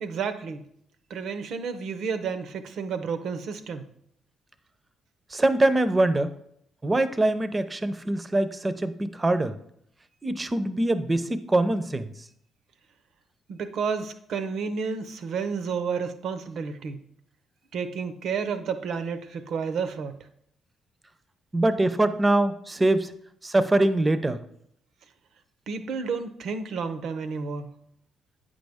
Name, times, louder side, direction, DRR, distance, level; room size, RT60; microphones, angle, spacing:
voice 1, 0.0-0.6 1.1-3.9 13.5-17.0 17.7-20.3 25.7-27.7, right 5 dB, 70° right, 10 dB, 0.6 m, -31 dB
voice 2, 5.3-6.3 6.8-9.6 10.2-12.1 21.5-23.1 23.4-24.4, right 2 dB, 20° right, 12 dB, 0.5 m, -23 dB
8.7 x 5.3 x 3.5 m, 0.71 s
cardioid pair, 90°, 0 cm